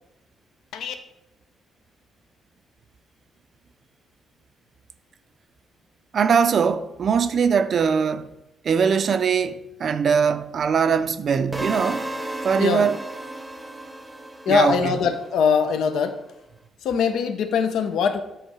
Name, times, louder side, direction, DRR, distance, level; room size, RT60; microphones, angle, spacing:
voice 1, 6.1-8.3 8.6-12.1 12.4-13.0 14.5-14.9, right 6 dB, 55° right, 0.4 m, -21 dB
sound 1, 11.5-15.6, right 1 dB, 10° right, 0.7 m, -34 dB
voice 2, 14.5-16.2 16.8-18.2, left 6 dB, 75° left, 0.6 m, -22 dB
7.9 x 3.2 x 4.8 m
cardioid pair, 90°, 0 cm